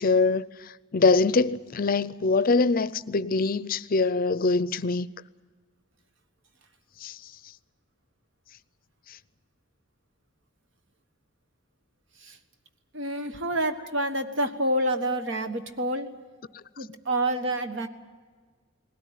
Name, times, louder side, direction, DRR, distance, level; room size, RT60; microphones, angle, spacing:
voice 1, 0.0-5.1 7.0-7.2, left 3 dB, 45° left, 0.5 m, -23 dB
voice 2, 12.9-16.2 16.8-17.9, right 1 dB, 70° right, 1.4 m, -28 dB
20.0 x 17.5 x 9.3 m
head